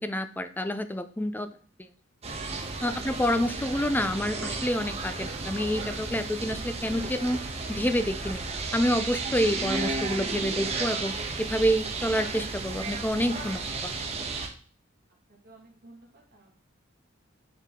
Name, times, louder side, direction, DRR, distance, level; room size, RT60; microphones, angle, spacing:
voice 1, 0.0-1.5 1.8-1.9 2.8-7.4 7.7-8.4 8.7-13.9, equal, 10° left, 10 dB, 0.6 m, -28 dB
sound 1, 2.2-14.5, right 3 dB, 30° right, 1.2 m, -33 dB
voice 2, 15.3-16.5, right 2 dB, 50° right, -1 dB, 2.1 m, -54 dB
10.0 x 4.7 x 3.8 m, 0.43 s
head